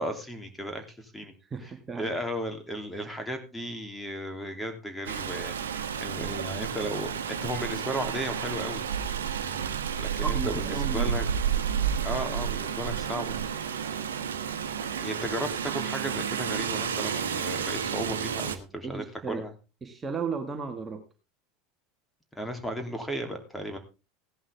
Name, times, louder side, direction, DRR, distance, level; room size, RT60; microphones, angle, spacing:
voice 1, 0.0-1.3 1.6-1.7 2.0-8.9 10.0-11.3 12.0-13.4 15.0-19.5 22.3-23.8, equal, 5° left, 6 dB, 3.0 m, -35 dB
voice 2, 1.5-2.1 3.0-3.1 10.2-11.1 18.8-19.4 19.8-21.0, right 5 dB, 25° right, 4 dB, 1.9 m, -34 dB
Rain, 5.1-18.6, right 8 dB, 80° right, 1.2 m, -31 dB
16.0 x 11.0 x 3.5 m, 0.30 s
hypercardioid pair, 80°, 0 cm